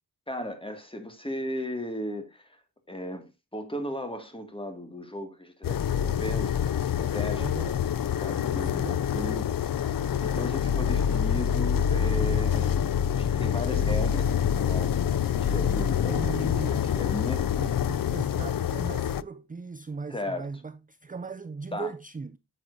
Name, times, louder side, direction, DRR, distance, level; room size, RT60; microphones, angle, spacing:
voice 1, 0.3-2.5 2.9-7.5 8.2-9.5 9.8-14.4 14.6-17.4 20.1-20.5 21.7-21.9, left 1 dB, 15° left, 2.1 m, -36 dB
sound 1, 5.6-19.2, left 9 dB, 60° left, 0.5 m, -26 dB
voice 2, 7.4-7.9 8.6-9.0 16.0-17.2 17.5-22.4, right 4 dB, 25° right, 0.4 m, -38 dB
9.8 x 7.6 x 2.7 m
wide cardioid pair, 85°, 38 cm